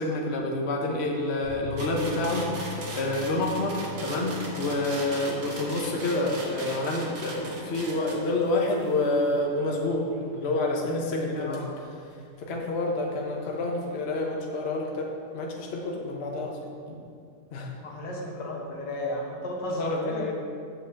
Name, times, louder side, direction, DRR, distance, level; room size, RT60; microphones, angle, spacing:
voice 1, 0.0-11.7 12.4-16.6 16.9-17.0 17.5-17.7 19.7-20.3, left 2 dB, 40° left, -1 dB, 1.1 m, -28 dB
sound 1, 1.4-8.5 8.8-8.9 9.2-9.3, left 5 dB, 25° right, 2.6 m, -43 dB
sound 2, 1.8-10.3 11.5-11.6, right 2 dB, 75° right, 2.0 m, -39 dB
voice 2, 11.3-11.7 17.8-20.3, left 1 dB, 75° left, -2 dB, 2.0 m, -33 dB
7.1 x 5.7 x 7.0 m, 2.3 s
omnidirectional pair, 1.9 m